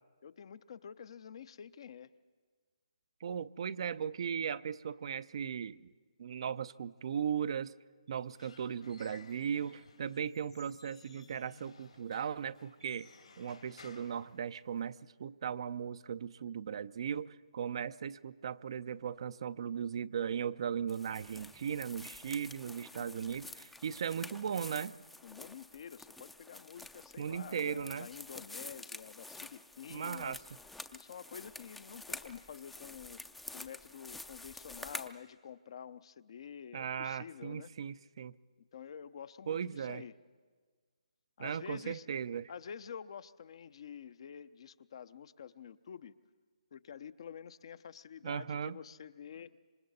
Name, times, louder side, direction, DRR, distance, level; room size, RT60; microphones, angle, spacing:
voice 1, 0.2-2.1 23.0-23.4 25.2-30.4 30.9-33.2 33.5-37.7 38.6-40.1 41.4-42.1 42.5-46.2 46.7-49.6, left 7 dB, 50° left, 14 dB, 0.7 m, -48 dB
voice 2, 3.2-5.9 6.2-7.7 8.1-13.1 13.4-25.0 27.2-28.1 29.9-30.4 36.7-38.3 39.5-40.0 41.4-42.5 48.2-48.8, right 7 dB, 50° right, 15 dB, 0.5 m, -37 dB
Squeak / Wood, 8.1-15.0, left 4 dB, 75° left, 3.0 m, -59 dB
sound 1, 20.9-35.1, left 2 dB, 5° left, 0.5 m, -49 dB
26.5 x 25.0 x 4.1 m, 1.5 s
hypercardioid pair, 150°, 4 cm